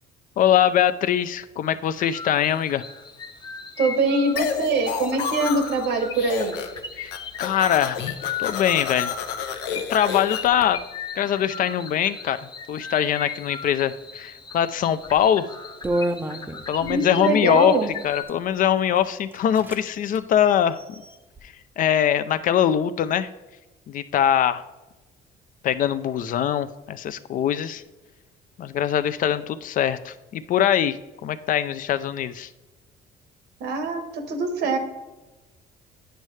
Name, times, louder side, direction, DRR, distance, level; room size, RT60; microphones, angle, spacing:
voice 1, 0.4-2.8 7.0-7.1 7.4-8.0 8.4-9.1 9.9-10.8 11.2-12.4 12.7-15.5 16.7-17.8 18.0-20.8 21.8-23.3 23.9-24.6 25.6-27.8 28.6-31.0 31.2-32.5, left 10 dB, 55° left, 13 dB, 0.4 m, -22 dB
sound 1, 2.0-18.2, left 6 dB, 25° left, 0.7 m, -38 dB
voice 2, 3.8-6.6 16.9-17.9 33.6-34.8, right 3 dB, 75° right, 7 dB, 1.1 m, -23 dB
sound 2, 4.4-5.9 6.1-6.8 7.1-10.6, left 7 dB, 85° left, 0.7 m, -30 dB
sound 3, 15.0-15.2 15.8-17.0 17.9-18.4 19.0-19.1 19.3-19.8 20.1-20.2 20.7-21.4, right 1 dB, 10° right, 0.4 m, -30 dB
9.0 x 5.4 x 3.2 m, 1.1 s
cardioid pair, 110°, 17 cm